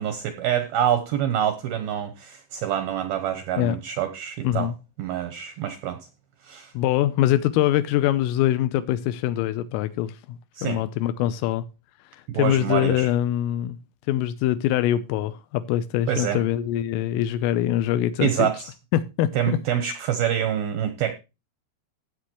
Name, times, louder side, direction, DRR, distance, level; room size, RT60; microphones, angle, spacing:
voice 1, 0.0-4.7 5.0-6.0 6.4-6.7 10.6-10.8 12.3-13.1 16.1-16.4 18.2-18.7 19.4-21.1, right 10 dB, 85° right, 2.2 m, -26 dB
voice 2, 4.4-4.7 6.7-11.6 12.3-13.8 14.1-18.5 18.9-19.6, left 12 dB, 85° left, 3.4 m, -23 dB
16.0 x 8.6 x 3.0 m
omnidirectional pair, 5.8 m